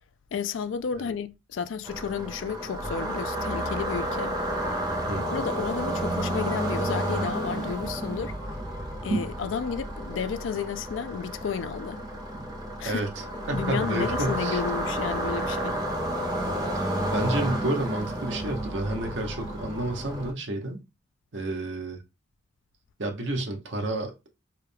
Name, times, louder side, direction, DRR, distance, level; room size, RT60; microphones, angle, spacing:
voice 1, 0.3-4.4 5.2-8.4 9.0-12.0 12.8-13.0 13.5-15.8, left 6 dB, 85° left, 0.4 m, -32 dB
sound 1, 1.8-20.3, right 1 dB, 20° right, 0.6 m, -31 dB
voice 2, 5.1-5.4 12.8-13.1 13.5-14.6 16.8-20.8 21.3-22.0 23.0-24.4, right 1 dB, 75° right, 1.0 m, -30 dB
4.7 x 2.2 x 3.3 m
head